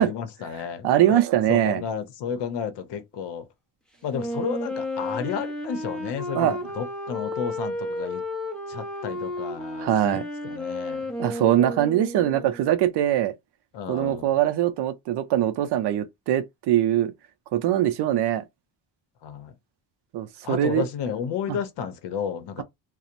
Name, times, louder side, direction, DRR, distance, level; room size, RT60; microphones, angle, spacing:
voice 1, 0.0-0.9 1.5-3.4 4.0-8.2 8.7-11.1 13.7-14.3 19.2-19.5 20.4-22.6, left 7 dB, 60° left, 0.7 m, -32 dB
voice 2, 0.8-1.8 6.3-6.6 9.8-10.3 11.2-13.3 13.9-17.1 17.5-18.4 20.1-20.9 21.5-21.6, right 12 dB, 60° right, 0.5 m, -22 dB
Wind instrument woodwind instrument, 4.1-12.6, left 1 dB, ahead, 0.3 m, -32 dB
2.8 x 2.1 x 2.5 m
cardioid pair, 150°, 48 cm